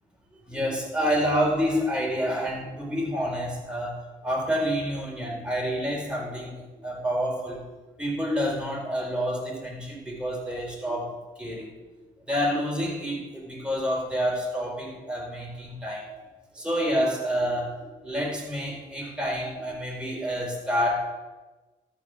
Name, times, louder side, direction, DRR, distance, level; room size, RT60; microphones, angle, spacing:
voice 1, 0.5-7.6 8.0-11.8 12.3-16.1 16.5-21.1, equal, 5° right, -2 dB, 3.9 m, -28 dB
13.0 x 4.9 x 6.3 m, 1.2 s
cardioid pair, 65°, 15 cm